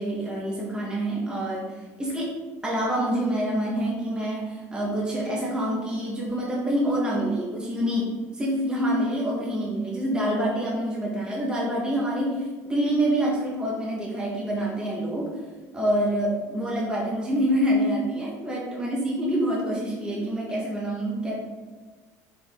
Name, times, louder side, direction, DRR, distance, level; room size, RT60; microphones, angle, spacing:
voice 1, 0.0-15.4 15.7-21.3, right 1 dB, 15° right, -4 dB, 1.7 m, -26 dB
7.4 x 4.8 x 3.9 m, 1.4 s
cardioid pair, 125°, 7 cm